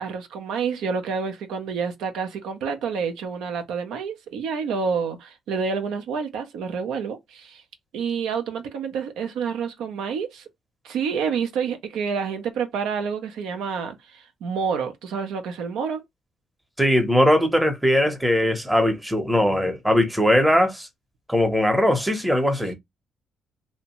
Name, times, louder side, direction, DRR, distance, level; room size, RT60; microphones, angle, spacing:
voice 1, 0.0-7.6 7.9-10.5 10.8-16.0, right 6 dB, 85° right, 0.5 m, -28 dB
voice 2, 16.8-20.9 21.3-22.8, left 1 dB, 5° right, 0.7 m, -20 dB
2.7 x 2.1 x 2.9 m
cardioid pair, 90°, 0 cm